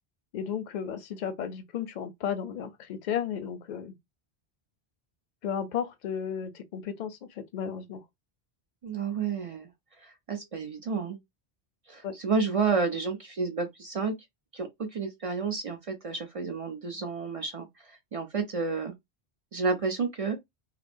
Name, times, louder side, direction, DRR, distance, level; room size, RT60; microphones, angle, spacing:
voice 1, 0.3-3.9 5.4-8.0 12.0-12.2, left 8 dB, 55° left, 0.6 m, -34 dB
voice 2, 8.8-9.7 10.0-11.2 11.9-14.1 14.5-18.9 19.5-20.4, right 4 dB, 50° right, 0.4 m, -31 dB
2.8 x 2.0 x 2.5 m
omnidirectional pair, 1.1 m